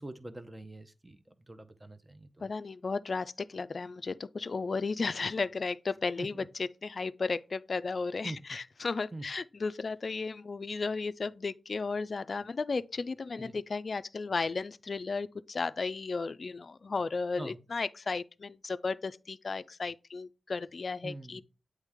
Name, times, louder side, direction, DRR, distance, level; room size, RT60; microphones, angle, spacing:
voice 1, 0.0-2.5 6.2-6.5 8.2-8.4 9.1-9.2 13.4-13.5 17.4-17.6 21.0-21.4, right 2 dB, 20° right, 0.8 m, -44 dB
voice 2, 2.4-6.3 6.6-21.4, left 4 dB, 55° left, 0.4 m, -34 dB
8.2 x 3.2 x 3.6 m
cardioid pair, 55°, 0 cm